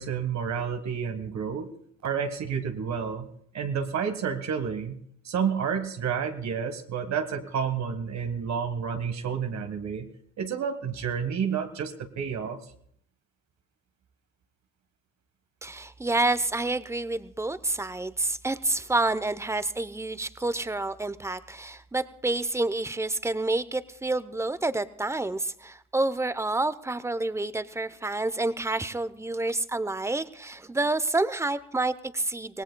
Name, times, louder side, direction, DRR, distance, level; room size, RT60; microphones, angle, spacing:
voice 1, 0.0-1.7 2.0-3.3 3.5-5.0 5.2-10.1 10.4-12.6, right 7 dB, 65° right, 7 dB, 1.6 m, -30 dB
voice 2, 15.6-32.6, right 2 dB, 10° right, 14 dB, 0.7 m, -28 dB
24.5 x 18.0 x 2.3 m, 0.67 s
cardioid pair, 90°, 30 cm